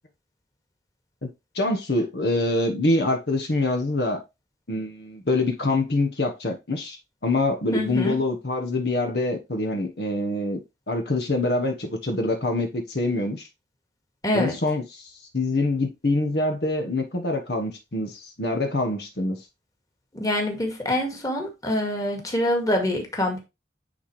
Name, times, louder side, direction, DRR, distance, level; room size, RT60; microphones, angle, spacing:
voice 1, 1.5-4.2 4.7-10.6 10.9-13.5 14.3-19.5, left 2 dB, 65° left, 1.2 m, -25 dB
voice 2, 7.7-8.2 14.2-14.6 20.1-23.4, left 1 dB, 20° left, 2.0 m, -25 dB
9.3 x 4.3 x 3.2 m
head